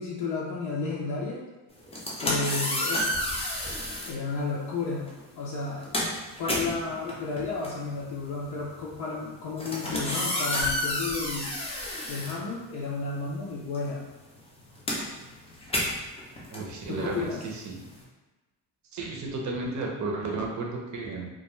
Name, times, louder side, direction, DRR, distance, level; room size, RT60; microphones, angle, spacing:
voice 1, 0.0-1.4 2.2-3.1 4.1-5.1 5.4-5.9 6.4-11.6 12.1-14.1 16.9-17.4, left 4 dB, 60° left, -5 dB, 0.6 m, -32 dB
sound 1, 1.8-4.2 5.1-5.3 5.6-13.1 13.4-18.0, left 1 dB, 15° left, 0.5 m, -31 dB
voice 2, 16.5-17.8 18.9-21.3, right 3 dB, 40° right, 0 dB, 0.6 m, -33 dB
2.3 x 2.2 x 3.0 m, 1.2 s
cardioid pair, 115°, 43 cm